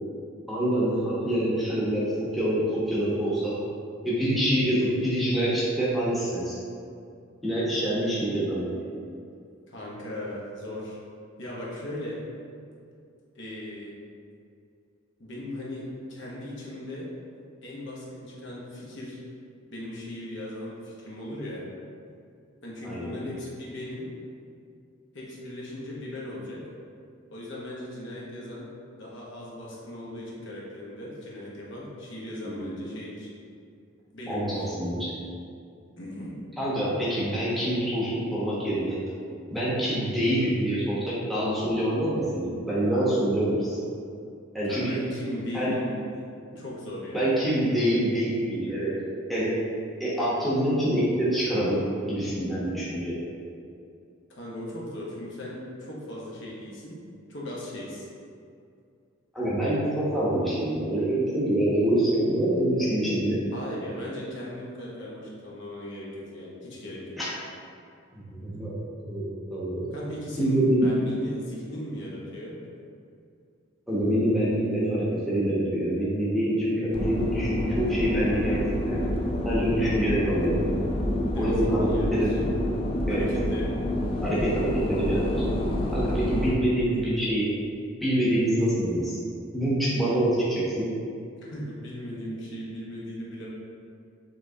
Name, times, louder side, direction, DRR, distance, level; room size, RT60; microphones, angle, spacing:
voice 1, 0.5-3.6 4.0-6.6 7.4-8.7 22.8-23.2 32.4-32.8 34.3-35.1 36.6-39.0 39.5-43.8 44.5-45.0 45.5-45.7 47.1-49.0 49.3-49.5 50.0-51.8 52.1-53.2 59.3-63.4 67.2-67.3 68.1-68.7 69.1-69.9 70.4-70.9 73.9-79.1 79.4-80.8 81.4-82.4 83.1-83.2 84.2-85.2 85.9-87.5 88.0-89.2 89.5-90.9, right 1 dB, ahead, -9 dB, 0.9 m, -26 dB
voice 2, 9.7-11.0 11.4-12.2 13.3-13.9 15.2-15.8 16.1-17.1 17.6-19.2 19.7-21.6 22.6-24.1 25.1-26.6 27.3-28.7 29.0-33.3 34.1-34.7 36.0-36.4 44.7-45.9 46.5-47.3 54.3-57.0 57.3-58.1 63.5-67.2 69.9-72.6 81.3-82.4 83.1-83.7 91.4-93.5, left 1 dB, 60° left, -5 dB, 1.0 m, -38 dB
sound 1, 76.9-86.5, left 1 dB, 25° left, 0.3 m, -28 dB
5.7 x 3.3 x 2.7 m, 2.4 s
head